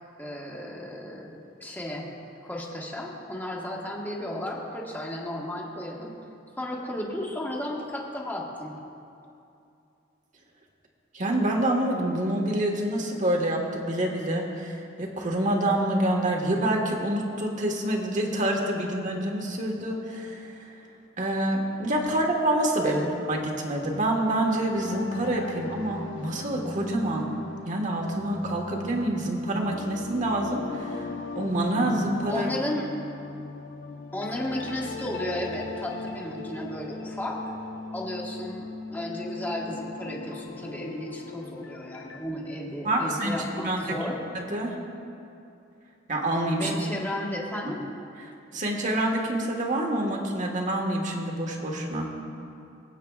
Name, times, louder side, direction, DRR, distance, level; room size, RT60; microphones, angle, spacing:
voice 1, 0.2-2.1 2.4-6.2 6.6-8.8 22.8-23.1 32.3-32.9 34.1-37.4 37.9-44.2 46.5-47.8, left 1 dB, 10° left, -3 dB, 1.4 m, -34 dB
voice 2, 11.1-20.5 21.2-27.3 27.6-31.1 31.3-32.5 42.8-44.7 46.1-46.7 48.5-52.1, right 1 dB, 45° right, 1 dB, 1.4 m, -27 dB
sound 1, 24.7-42.3, left 4 dB, 90° left, 0.7 m, -39 dB
23.5 x 8.5 x 2.4 m, 2.6 s
head